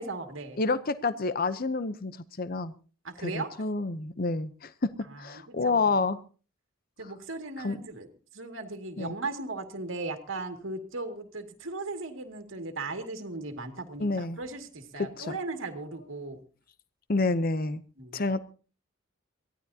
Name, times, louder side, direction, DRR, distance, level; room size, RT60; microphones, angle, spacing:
voice 1, 0.0-0.6 3.0-3.5 5.1-5.9 7.0-8.1 8.3-16.4 18.0-18.2, right 3 dB, 70° right, 6 dB, 2.2 m, -37 dB
voice 2, 0.6-2.7 3.2-4.9 5.2-6.2 7.6-7.8 9.0-9.1 14.0-14.4 15.2-15.4 17.1-17.8 18.1-18.4, left 3 dB, 45° left, 13 dB, 0.7 m, -29 dB
23.0 x 16.0 x 2.8 m, 0.38 s
head